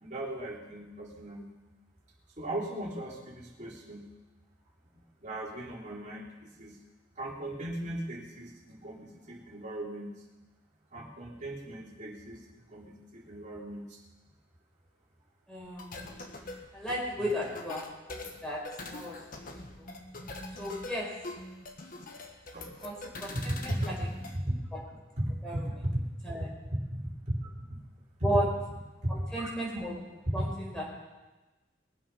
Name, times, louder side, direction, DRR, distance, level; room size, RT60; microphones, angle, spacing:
voice 1, 0.0-1.5 2.4-4.1 5.2-6.8 7.2-10.1 10.9-12.4 12.7-14.0 22.5-23.8 24.3-24.5 25.2-26.3 27.0-27.5 29.0-29.1 29.4-29.5 30.4-30.5, right 1 dB, 40° right, -5 dB, 3.4 m, -37 dB
voice 2, 15.5-16.0 16.7-17.8 18.1-18.6 18.9-19.5 19.8-19.9 20.6-21.1 22.8-22.9 23.2-24.0 24.7-24.8 25.4-25.7 26.2-26.5 28.2-28.5 29.1-30.8, equal, 5° left, -4 dB, 4.6 m, -34 dB
sound 1, 15.8-24.4, left 2 dB, 45° left, 1.4 m, -43 dB
22.5 x 7.7 x 5.6 m, 1.1 s
head